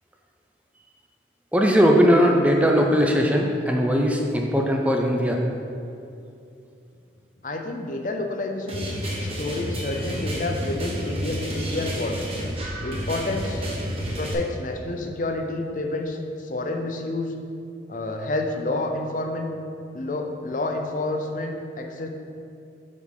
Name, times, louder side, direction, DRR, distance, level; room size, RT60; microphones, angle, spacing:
voice 1, 1.5-5.4, equal, 10° right, 1 dB, 0.5 m, -19 dB
voice 2, 7.4-12.3 12.8-13.7 14.2-17.3 17.9-19.6 19.9-22.1, left 2 dB, 45° left, 4 dB, 0.6 m, -29 dB
sound 1, 8.7-14.3, equal, 35° right, 1.3 m, -30 dB
7.9 x 5.0 x 5.5 m, 2.6 s
head